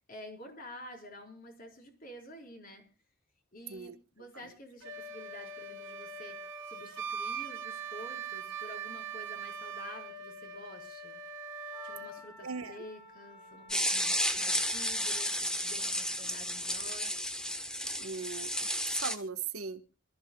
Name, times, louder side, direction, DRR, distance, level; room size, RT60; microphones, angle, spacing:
voice 1, 0.1-2.8 3.5-6.4 6.7-11.2 11.8-17.1, left 1 dB, 40° left, 2 dB, 4.4 m, -49 dB
Wind instrument woodwind instrument, 4.8-12.2, right 5 dB, 60° right, 2.2 m, -41 dB
Wind instrument woodwind instrument 2, 11.7-15.4, left 1 dB, 20° left, 4.1 m, -53 dB
voice 2, 12.4-12.8 17.9-20.0, right 5 dB, 85° right, 9 dB, 1.4 m, -40 dB
sound 1, 13.7-19.2, equal, 5° left, 1.2 m, -32 dB
27.0 x 14.0 x 2.3 m, 0.32 s
head